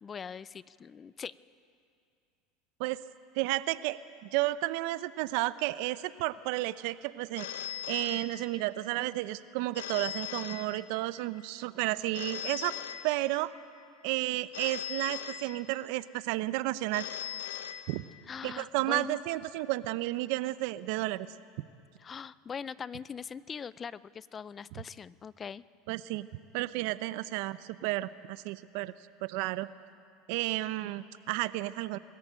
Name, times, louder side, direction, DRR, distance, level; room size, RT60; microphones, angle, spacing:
voice 1, 0.0-1.3 18.3-19.2 22.0-25.6, left 6 dB, 30° left, 19 dB, 0.4 m, -41 dB
voice 2, 3.3-7.5 7.9-12.8 13.0-13.5 14.0-17.1 17.9-18.0 18.4-21.3 25.9-26.3 26.5-28.9 29.2-29.7 30.3-32.0, right 18 dB, 70° right, 16 dB, 0.6 m, -32 dB
Telephone, 7.4-8.9 9.7-11.2 12.1-13.6 14.5-16.0 16.9-18.4, left 11 dB, 85° left, 1.0 m, -40 dB
22.0 x 14.0 x 8.8 m, 2.4 s
supercardioid pair, 105°, 0 cm